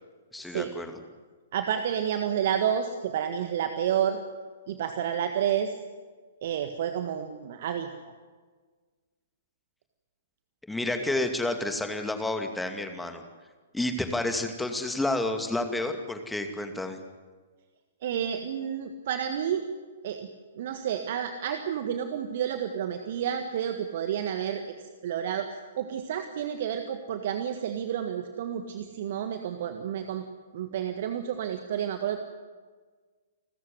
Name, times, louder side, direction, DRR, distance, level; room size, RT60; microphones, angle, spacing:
voice 1, 0.3-1.0 10.7-13.2 13.7-17.0, left 2 dB, 5° left, 6 dB, 2.4 m, -30 dB
voice 2, 1.5-4.2 4.7-5.7 6.4-7.9 18.0-19.6 20.0-20.3 20.5-24.6 25.0-30.2 30.5-32.2, right 9 dB, 50° right, 7 dB, 1.6 m, -30 dB
29.5 x 14.0 x 9.6 m, 1.5 s
figure-of-eight pair, 115°, 0 cm